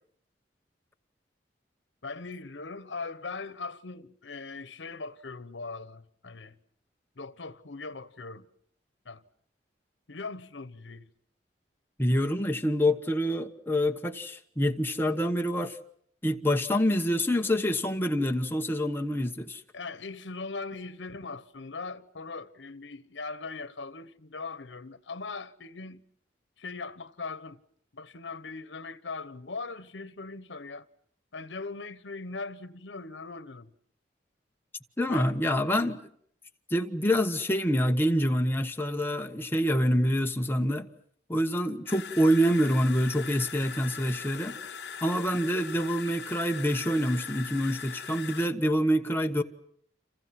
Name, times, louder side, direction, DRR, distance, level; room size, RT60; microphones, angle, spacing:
voice 1, 2.0-6.6 7.2-8.5 9.0-9.2 10.1-11.1 19.7-26.0 26.6-27.6 27.9-30.9 31.3-33.7 35.1-35.3, left 4 dB, 85° left, 1.1 m, -40 dB
voice 2, 12.0-15.8 16.2-19.6 35.0-36.0 36.7-40.9 41.3-44.6 45.0-49.4, equal, 10° left, 1.1 m, -26 dB
sound 1, 41.9-48.5, left 6 dB, 65° left, 1.0 m, -41 dB
30.0 x 27.0 x 5.9 m
head